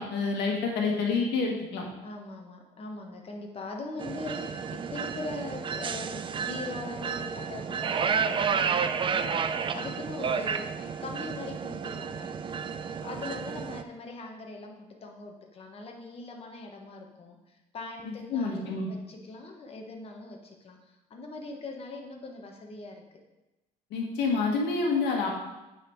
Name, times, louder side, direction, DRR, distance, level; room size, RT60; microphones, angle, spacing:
voice 1, 0.0-1.8 18.0-18.9 23.9-25.3, left 4 dB, 85° left, 0 dB, 1.7 m, -28 dB
voice 2, 2.0-12.3 12.8-23.2, left 2 dB, 35° left, 2 dB, 1.2 m, -41 dB
sound 1, 4.0-13.8, right 6 dB, 30° right, 0.4 m, -31 dB
9.0 x 4.1 x 4.5 m, 1.0 s
cardioid pair, 110°, 17 cm